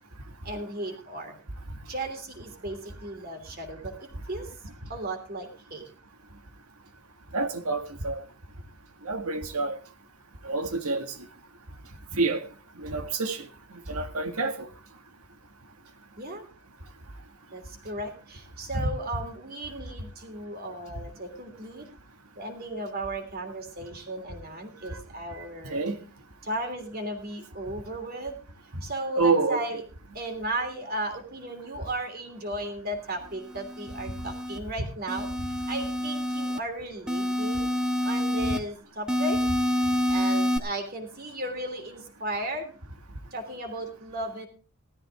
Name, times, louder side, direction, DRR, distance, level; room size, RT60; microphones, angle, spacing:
voice 1, 0.4-1.4 1.9-4.5 4.9-5.9 16.2-16.5 17.5-21.9 22.3-25.8 26.4-28.4 28.8-29.8 30.1-37.7 38.0-39.4 40.1-42.7 43.3-44.5, right 1 dB, 40° right, 3.1 m, -35 dB
voice 2, 7.3-8.2 9.0-9.8 10.4-11.1 12.1-12.4 12.8-13.5 13.9-14.7 18.7-18.8 25.7-26.0 29.2-29.8, right 3 dB, 85° right, 1.8 m, -27 dB
sound 1, 33.5-34.6 35.1-36.6 37.1-38.6 39.1-40.6, equal, 5° right, 1.2 m, -27 dB
17.0 x 13.5 x 3.5 m
head